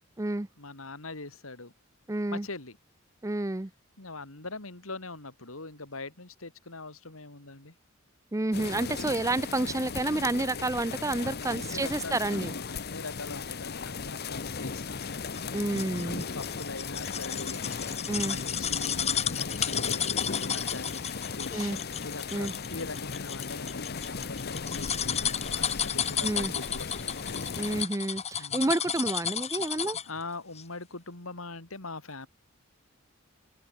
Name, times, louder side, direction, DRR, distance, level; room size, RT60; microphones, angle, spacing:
voice 1, 0.6-1.7 2.3-2.8 4.0-7.7 11.2-15.0 16.0-17.6 18.2-26.9 28.4-28.7 29.5-29.6 30.0-32.3, left 3 dB, 75° left, 3.8 m, -42 dB
voice 2, 2.1-2.5 3.2-3.7 8.3-12.5 15.5-16.2 18.1-18.4 21.5-21.8 22.3-22.5 26.2-26.5 27.6-30.0, right 2 dB, 15° right, 0.6 m, -29 dB
sound 1, 8.5-27.9, left 5 dB, 50° left, 1.0 m, -36 dB
sound 2, 15.0-30.2 30.6-30.7, left 8 dB, 30° left, 2.3 m, -33 dB
open air
head